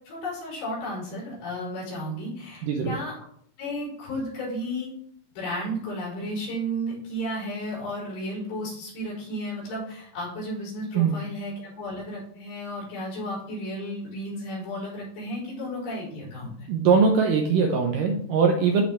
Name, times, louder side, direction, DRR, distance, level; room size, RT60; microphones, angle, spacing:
voice 1, 0.1-3.2 3.6-4.9 5.3-16.7, equal, 75° left, -7 dB, 6.8 m, -33 dB
voice 2, 2.6-2.9 10.9-11.2 16.7-18.8, right 5 dB, 85° right, 2 dB, 1.9 m, -21 dB
14.5 x 5.2 x 3.5 m, 0.65 s
omnidirectional pair, 5.0 m